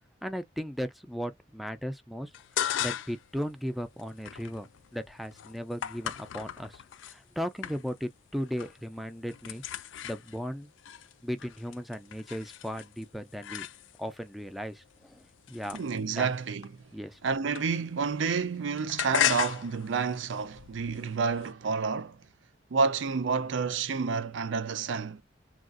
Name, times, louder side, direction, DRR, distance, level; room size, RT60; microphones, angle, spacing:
voice 1, 0.2-6.8 7.1-10.7 11.2-13.7 14.0-15.8 16.2-16.3 16.9-17.2, equal, ahead, 0.4 m, -37 dB
sound 1, 2.3-3.3 3.7-7.2 7.6-8.1 8.4-8.9 9.1-14.2 14.8-18.1 18.3-21.5, left 10 dB, 90° left, 0.4 m, -36 dB
voice 2, 15.7-16.8 17.2-22.2 22.7-25.2, right 5 dB, 85° right, 0.5 m, -29 dB
3.5 x 2.4 x 2.4 m
head